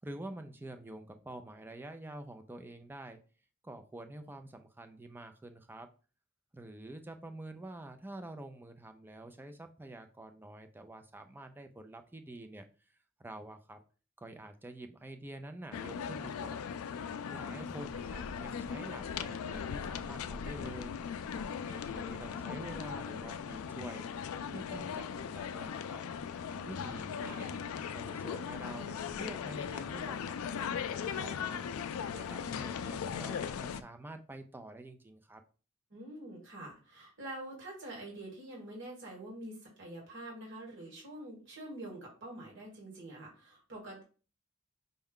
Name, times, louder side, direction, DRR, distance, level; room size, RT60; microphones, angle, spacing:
voice 1, 0.0-3.2 3.6-5.9 6.5-12.7 13.2-13.8 14.2-16.6 17.3-26.0 26.6-27.6 27.9-31.7 32.1-35.4, right 1 dB, 10° right, 7 dB, 0.4 m, -47 dB
sound 1, 15.7-33.8, left 7 dB, 80° left, 0.3 m, -39 dB
voice 2, 27.2-27.6 35.9-44.0, right 1 dB, 60° right, -3 dB, 1.6 m, -46 dB
5.3 x 2.3 x 3.6 m, 0.36 s
head